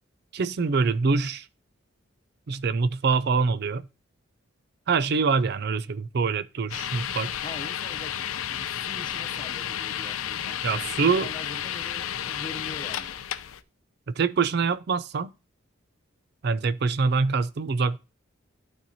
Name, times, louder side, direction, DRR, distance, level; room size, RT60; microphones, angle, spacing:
voice 1, 0.3-1.5 2.5-3.8 4.9-7.3 10.6-11.3 14.2-15.3 16.4-18.0, right 4 dB, 50° right, 0.4 m, -24 dB
sound 1, 6.7-13.6, left 10 dB, 85° left, 0.6 m, -32 dB
voice 2, 7.4-11.0 11.3-13.2, left 2 dB, 20° left, 0.7 m, -44 dB
12.0 x 4.4 x 2.7 m
head